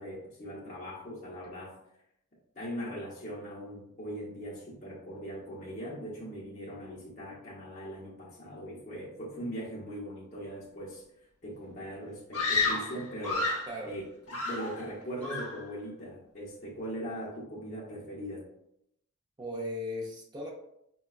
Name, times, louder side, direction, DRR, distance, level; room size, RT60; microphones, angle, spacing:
voice 1, 0.0-1.8 2.6-11.0 11.4-13.5 13.9-14.0 14.3-18.4, equal, 30° left, -7 dB, 0.8 m, -40 dB
Screaming, 12.3-13.8 14.3-14.9 15.2-15.6, left 3 dB, 80° left, 0.8 m, -31 dB
voice 2, 19.4-20.5, left 1 dB, 20° right, -1 dB, 0.5 m, -37 dB
4.2 x 2.2 x 2.3 m, 0.76 s
head